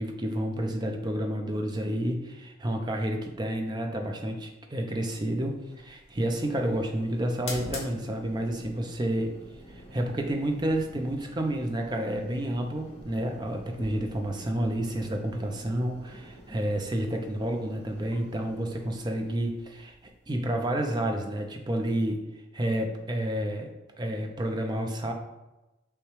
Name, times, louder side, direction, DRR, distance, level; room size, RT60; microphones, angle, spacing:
voice 1, 0.0-9.3 9.7-19.9 20.3-22.2 22.5-23.7 24.0-25.1, right 1 dB, 20° right, 3 dB, 0.4 m, -30 dB
sound 1, 5.6-20.9, left 1 dB, 30° left, 0.8 m, -46 dB
6.5 x 2.2 x 3.1 m, 1.0 s
head